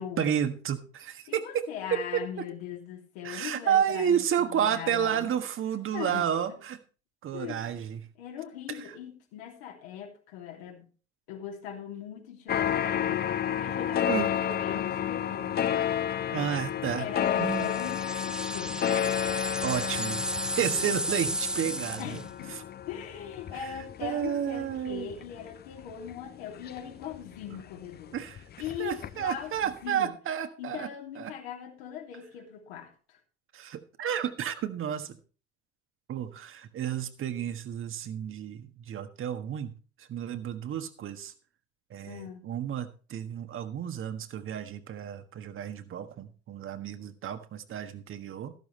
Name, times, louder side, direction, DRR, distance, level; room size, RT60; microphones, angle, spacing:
voice 1, 0.0-2.5 3.2-6.8 7.2-8.0 8.7-8.8 14.1-14.3 15.7-15.9 16.3-17.1 17.4-17.7 19.6-22.2 24.0-25.1 28.1-28.4 28.8-30.9 31.1-31.3 33.5-35.2 36.1-39.7 40.0-41.3 41.9-48.5, right 9 dB, 40° right, 9 dB, 1.5 m, -31 dB
voice 2, 1.3-5.4 5.9-6.6 7.3-7.7 8.2-10.8 11.3-13.3 13.6-15.6 16.9-18.8 22.0-22.6 22.9-28.1 28.6-30.1 30.6-33.2 42.0-42.5, left 9 dB, 65° left, 2 dB, 3.1 m, -40 dB
sound 1, 12.5-27.6 28.0-29.4 29.6-29.7, left 10 dB, 30° left, 0.8 m, -31 dB
sound 2, 17.5-22.3, right 1 dB, ahead, 0.5 m, -34 dB
14.0 x 12.5 x 3.3 m, 0.37 s
figure-of-eight pair, 60°, 32 cm